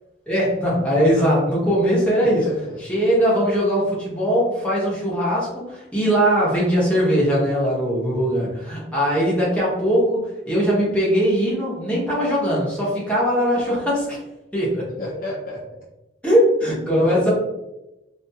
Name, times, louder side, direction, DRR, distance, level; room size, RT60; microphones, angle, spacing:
voice 1, 0.3-2.5 2.9-14.2 14.5-14.9 16.2-17.3, equal, 5° left, -7 dB, 0.8 m, -20 dB
voice 2, 2.2-2.8 15.0-15.6 17.0-17.3, left 1 dB, 45° left, -4 dB, 0.5 m, -31 dB
2.4 x 2.3 x 2.7 m, 0.94 s
head